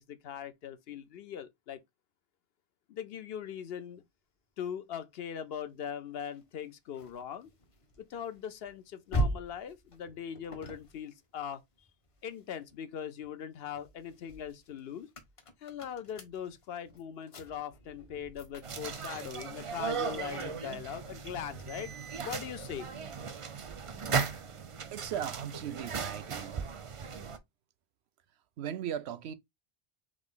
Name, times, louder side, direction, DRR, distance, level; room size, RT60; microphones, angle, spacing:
voice 1, 0.0-1.8 2.9-4.0 4.6-7.5 8.0-11.9 12.2-15.1 15.6-21.9 22.2-22.9, left 8 dB, 75° left, 0.9 m, -41 dB
sound 1, 6.2-12.8 13.2-23.0, right 1 dB, 35° left, 0.7 m, -42 dB
sound 2, 18.6-27.4, right 6 dB, 40° right, 0.5 m, -37 dB
voice 2, 24.9-26.7 28.6-29.3, right 9 dB, 90° right, 0.9 m, -38 dB
3.9 x 3.1 x 3.6 m
omnidirectional pair, 1.1 m